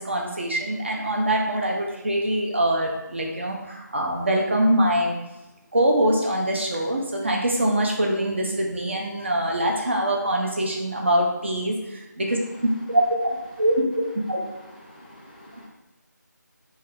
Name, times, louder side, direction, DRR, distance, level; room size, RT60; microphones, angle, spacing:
voice 1, 0.0-5.2 5.7-12.4 12.9-14.4, right 1 dB, 40° right, 0 dB, 0.5 m, -24 dB
voice 2, 14.9-15.7, left 1 dB, 25° left, -3 dB, 0.4 m, -48 dB
3.1 x 2.3 x 3.4 m, 0.99 s
figure-of-eight pair, 165°, 10 cm